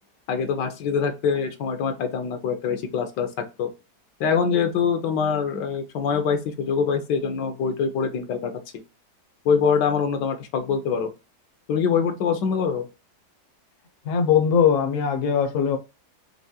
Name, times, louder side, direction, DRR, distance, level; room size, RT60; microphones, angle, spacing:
voice 1, 0.3-3.3 3.6-3.7 4.2-8.5 9.4-11.1 11.7-12.9, left 6 dB, 75° left, 1.4 m, -24 dB
voice 2, 14.1-15.8, left 7 dB, 60° left, 0.9 m, -20 dB
4.7 x 3.0 x 2.8 m
omnidirectional pair, 1.9 m